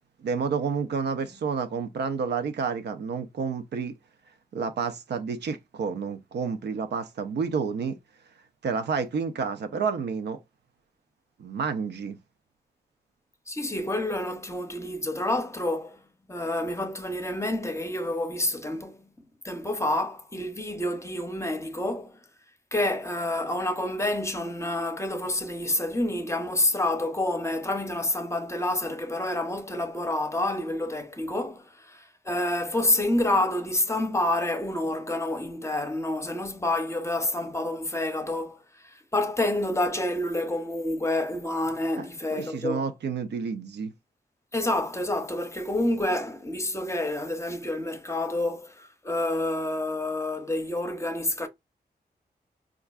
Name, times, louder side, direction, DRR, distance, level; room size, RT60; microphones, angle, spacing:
voice 1, 0.2-3.9 4.5-8.0 8.6-10.4 11.4-12.2 42.3-43.9, right 5 dB, 90° right, 0.5 m, -30 dB
voice 2, 13.5-16.0 16.3-19.1 19.4-22.2 22.7-38.6 38.8-42.8 44.5-51.5, left 1 dB, 15° left, 0.6 m, -28 dB
4.4 x 2.4 x 2.4 m
wide cardioid pair, 95°, 17 cm